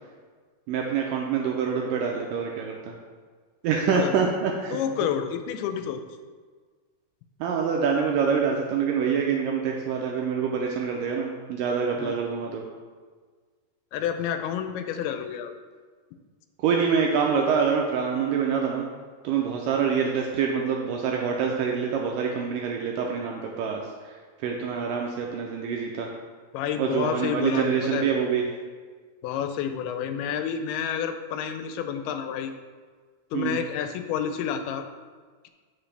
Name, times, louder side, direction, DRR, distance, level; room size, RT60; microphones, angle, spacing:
voice 1, 0.7-3.0 3.6-4.8 7.4-12.6 16.6-18.9 19.2-26.1 26.8-28.4 33.3-33.7, right 6 dB, 80° right, 0 dB, 2.0 m, -26 dB
voice 2, 4.7-6.0 12.0-12.1 13.9-15.5 26.5-28.1 29.2-32.5 33.3-34.8, left 8 dB, 90° left, 8 dB, 2.6 m, -29 dB
8.9 x 5.6 x 3.3 m, 1.5 s
omnidirectional pair, 4.4 m